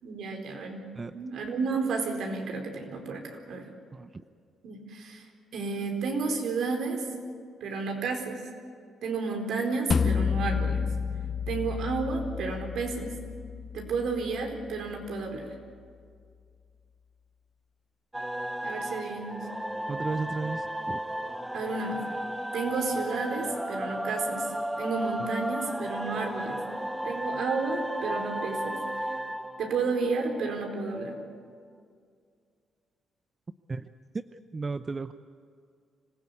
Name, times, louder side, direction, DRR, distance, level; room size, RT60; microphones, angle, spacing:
voice 1, 0.0-0.8 1.1-3.7 4.6-7.1 7.6-8.5 9.0-10.9 11.5-13.2 13.7-15.5 18.6-19.5 21.5-22.0 22.5-24.5 24.8-26.6 27.0-28.9 29.6-31.2, right 4 dB, 70° right, 3 dB, 4.5 m, -32 dB
sound 1, 9.9-15.0, left 6 dB, 40° left, 0.6 m, -31 dB
sound 2, 18.1-30.7, right 1 dB, 5° right, 0.9 m, -34 dB
voice 2, 19.9-21.0 25.2-25.3 33.7-33.8 34.5-35.1, right 4 dB, 30° right, 10 dB, 0.7 m, -34 dB
25.5 x 16.5 x 8.5 m, 2.2 s
cardioid pair, 90°, 0 cm